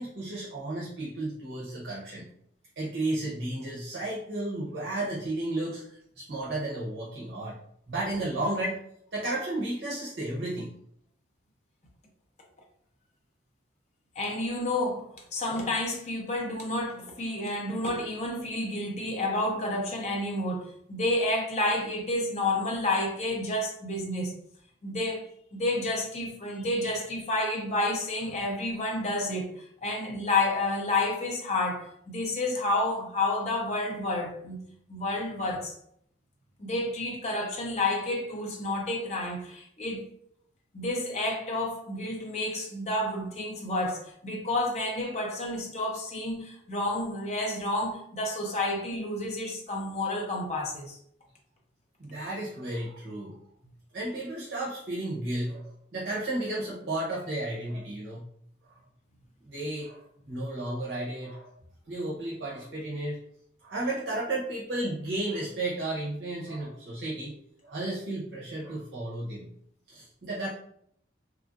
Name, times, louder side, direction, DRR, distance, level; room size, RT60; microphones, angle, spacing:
voice 1, 0.0-2.3 2.8-7.6 7.9-8.8 9.1-10.7 52.0-53.4 53.9-58.3 58.6-58.7 59.5-61.5 61.9-63.2 63.6-67.3 67.6-69.5 69.9-70.5, right 2 dB, 65° right, 0.7 m, -33 dB
voice 2, 14.2-24.3 24.8-25.2 25.5-34.6 34.9-35.7 36.6-40.1 40.7-51.0, left 2 dB, 35° left, 0.6 m, -30 dB
3.0 x 2.5 x 2.5 m
head